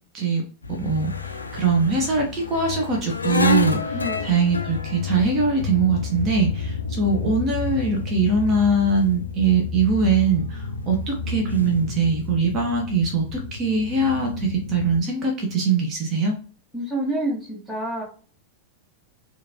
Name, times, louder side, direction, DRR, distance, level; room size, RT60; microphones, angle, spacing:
sound 1, 0.6-15.0, left 4 dB, 80° left, 0.3 m, -30 dB
voice 1, 0.7-1.1 1.5-4.0 4.2-16.3, right 4 dB, 30° right, 1 dB, 0.8 m, -22 dB
voice 2, 3.9-4.4 16.7-18.0, right 1 dB, 5° left, -6 dB, 1.4 m, -28 dB
3.0 x 2.5 x 2.5 m, 0.41 s
figure-of-eight pair, 90°, 0 cm